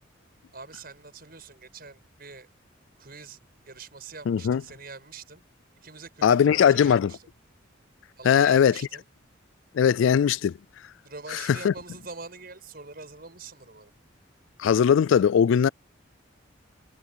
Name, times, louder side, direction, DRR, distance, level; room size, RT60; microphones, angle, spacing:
voice 1, 0.5-2.5 3.0-3.4 3.6-5.4 5.8-7.3 8.2-9.0 11.0-13.9, right 4 dB, 50° right, 6.6 m, -44 dB
voice 2, 4.3-4.6 6.2-7.1 8.2-8.8 9.7-10.5 11.3-11.7 14.6-15.7, left 8 dB, 75° left, 0.3 m, -20 dB
head